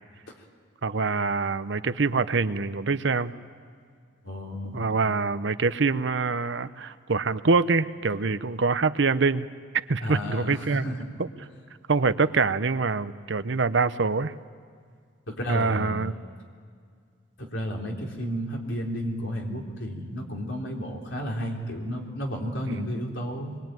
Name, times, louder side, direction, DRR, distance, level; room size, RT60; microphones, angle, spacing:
voice 1, 0.8-3.3 4.7-9.5 9.9-10.8 11.2-11.3 11.9-14.3 15.5-16.1 22.7-22.8, right 4 dB, 65° right, 13 dB, 0.8 m, -25 dB
voice 2, 4.2-4.9 10.0-11.1 15.3-16.0 17.4-23.6, equal, 75° left, 0 dB, 3.6 m, -32 dB
25.0 x 22.0 x 9.1 m, 2.1 s
head